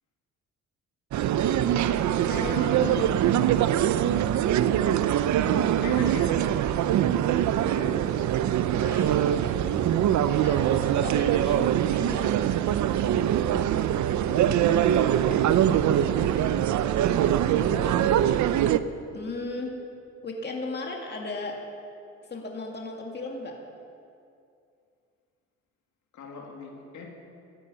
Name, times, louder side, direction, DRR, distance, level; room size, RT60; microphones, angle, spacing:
sound 1, 1.1-18.8, right 10 dB, 70° right, 0.7 m, -23 dB
voice 1, 2.3-3.2 8.8-9.6 10.1-12.4 17.2-18.3 19.1-19.8 20.2-21.6 22.3-23.6, left 2 dB, 35° left, 0 dB, 2.4 m, -36 dB
voice 2, 5.8-6.5 7.6-8.3 14.2-16.5 26.1-27.1, left 4 dB, 70° left, 0 dB, 2.6 m, -40 dB
13.5 x 9.9 x 9.8 m, 2.5 s
cardioid pair, 90°, 30 cm